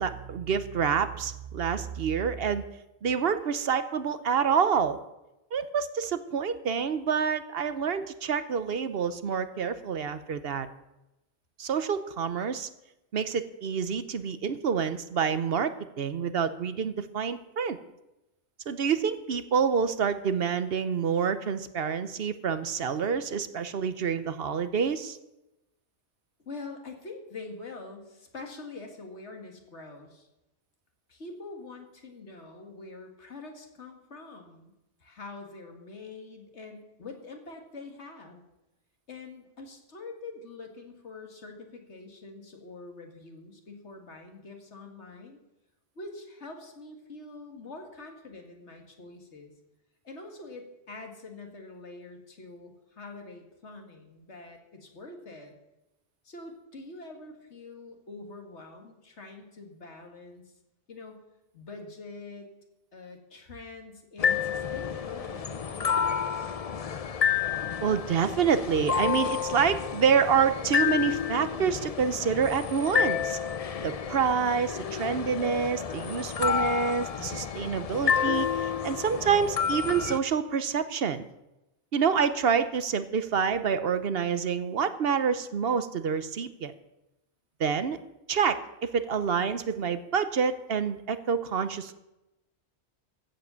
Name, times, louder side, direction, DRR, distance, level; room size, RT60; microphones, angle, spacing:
voice 1, 0.0-2.6 3.0-5.0 5.5-10.7 11.6-12.7 13.1-15.7 16.0-17.8 18.7-25.2 67.8-73.4 73.8-81.2 81.9-86.7 87.6-88.0 88.3-91.9, right 6 dB, 60° right, 12 dB, 1.0 m, -27 dB
voice 2, 26.4-30.3 31.1-34.7 35.0-38.4 39.1-45.4 46.0-49.5 50.0-55.5 56.2-60.4 60.9-61.2 61.5-62.5 62.9-66.5 89.1-89.2, left 3 dB, 80° left, 3 dB, 2.2 m, -45 dB
sound 1, 64.2-80.2, left 7 dB, 45° left, 0.6 m, -30 dB
15.0 x 7.5 x 6.9 m, 0.94 s
omnidirectional pair, 1.2 m